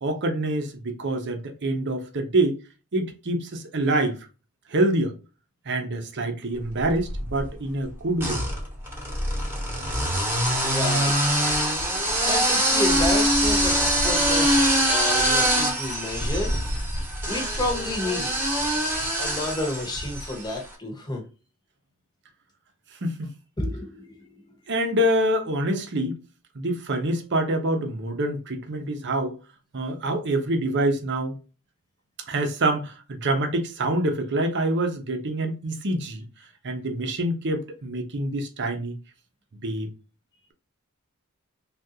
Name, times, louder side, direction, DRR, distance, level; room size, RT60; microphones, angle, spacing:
voice 1, 0.0-2.6 2.9-4.2 4.7-5.2 5.6-8.4 23.0-23.3 24.7-26.2 26.5-29.4 29.7-31.4 32.3-36.2 36.6-39.0 39.6-39.9, right 1 dB, 55° right, 0.8 m, -26 dB
sound 1, 6.8-7.5 8.2-20.5, right 1 dB, 10° right, 1.1 m, -24 dB
voice 2, 10.6-11.1 12.2-16.6 17.3-18.3 19.2-21.2 23.6-24.1, left 2 dB, 20° left, 1.0 m, -30 dB
3.6 x 2.5 x 2.7 m
head